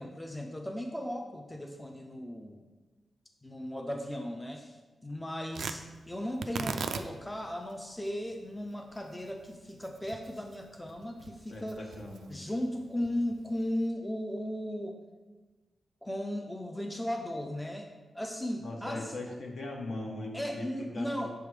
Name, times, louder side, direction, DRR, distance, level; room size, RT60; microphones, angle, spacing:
voice 1, 0.0-2.6 3.4-4.8 5.0-11.8 12.3-15.0 16.0-17.9 18.1-19.1 20.3-21.3, left 1 dB, 10° left, 2 dB, 0.4 m, -36 dB
Tearing, 5.5-13.9, right 5 dB, 85° right, 0.3 m, -42 dB
voice 2, 11.5-12.4 18.6-21.3, left 2 dB, 60° left, 0 dB, 1.0 m, -40 dB
6.5 x 3.5 x 4.7 m, 1.3 s
wide cardioid pair, 130°, 0 cm